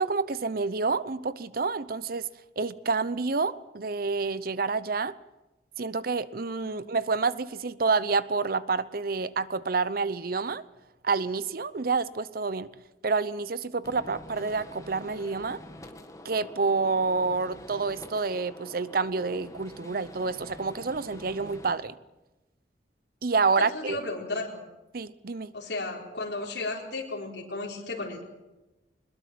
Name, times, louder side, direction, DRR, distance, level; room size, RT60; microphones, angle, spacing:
voice 1, 0.0-2.3 2.6-5.2 5.8-10.6 11.0-12.7 13.0-15.6 16.2-21.9 23.2-24.0 24.9-25.5, right 4 dB, 55° right, 16 dB, 0.7 m, -28 dB
Gunshot gunfire, 13.8-21.7, left 1 dB, 20° left, 1.9 m, -46 dB
voice 2, 23.6-24.6 25.5-28.2, left 2 dB, 70° left, -2 dB, 4.3 m, -34 dB
22.0 x 21.0 x 7.7 m, 1.0 s
head